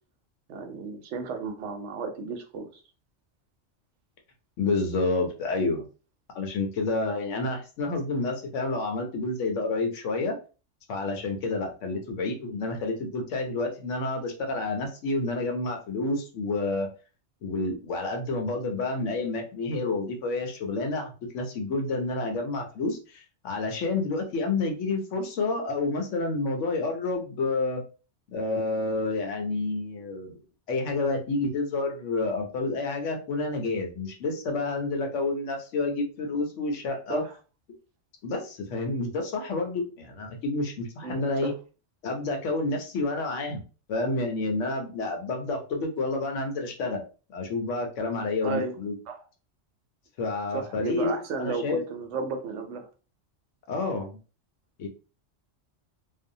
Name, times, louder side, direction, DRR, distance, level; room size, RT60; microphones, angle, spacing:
voice 1, 0.5-2.8 37.1-37.3 41.0-41.5 48.4-48.8 49.1-49.2 50.5-52.9, right 4 dB, 75° right, 5 dB, 0.9 m, -33 dB
voice 2, 4.6-5.9 6.3-10.3 10.9-16.9 17.4-27.8 28.3-30.4 30.7-37.2 38.2-41.5 42.0-43.6 43.9-47.0 47.3-48.9 50.2-51.8 53.7-54.2 54.8-54.9, left 3 dB, 80° left, 3 dB, 1.0 m, -29 dB
2.5 x 2.1 x 2.6 m, 0.34 s
omnidirectional pair, 1.3 m